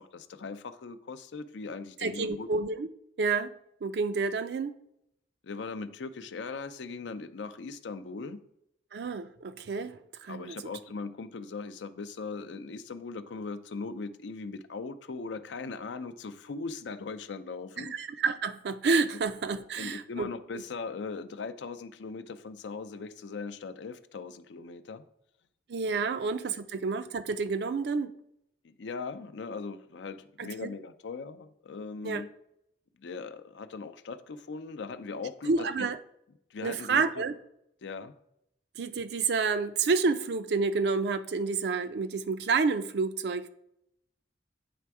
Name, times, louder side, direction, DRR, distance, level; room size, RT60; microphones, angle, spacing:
voice 1, 0.0-2.5 5.4-8.4 10.3-17.9 19.5-25.0 25.9-26.3 28.6-32.3 33.0-35.9 36.5-37.2 37.8-38.1, left 4 dB, 75° left, 0.5 m, -39 dB
voice 2, 2.0-2.9 3.2-3.5 3.8-4.7 8.9-10.6 17.8-20.3 20.5-20.6 25.7-28.1 30.4-30.7 32.0-32.2 35.5-36.0 36.6-37.3 38.8-43.5, right 4 dB, 60° right, 0.4 m, -29 dB
8.5 x 3.4 x 4.7 m
head